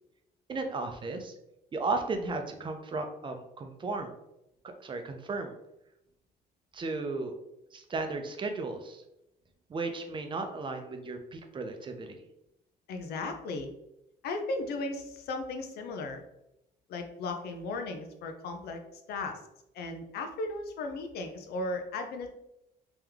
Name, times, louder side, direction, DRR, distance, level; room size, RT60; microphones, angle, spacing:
voice 1, 0.5-1.3 1.7-4.1 4.6-5.5 6.7-7.3 7.7-9.0 9.7-12.2, right 3 dB, 30° right, 5 dB, 0.6 m, -35 dB
voice 2, 12.9-13.7 14.2-16.2 16.9-18.8 19.1-19.4 19.7-22.3, left 2 dB, 70° left, 5 dB, 0.7 m, -36 dB
3.4 x 3.0 x 3.5 m, 0.87 s
cardioid pair, 110°, 17 cm